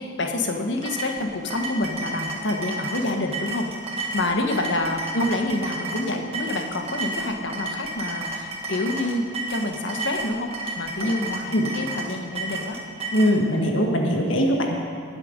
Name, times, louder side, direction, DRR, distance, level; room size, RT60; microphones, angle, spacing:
voice 1, 0.0-3.7 4.1-12.8, left 2 dB, 70° left, 4 dB, 1.2 m, -27 dB
sound 1, 0.8-13.3, right 2 dB, 30° right, 1.5 m, -32 dB
voice 2, 13.1-14.8, equal, 90° left, 1 dB, 1.4 m, -21 dB
19.5 x 7.7 x 5.1 m, 2.4 s
head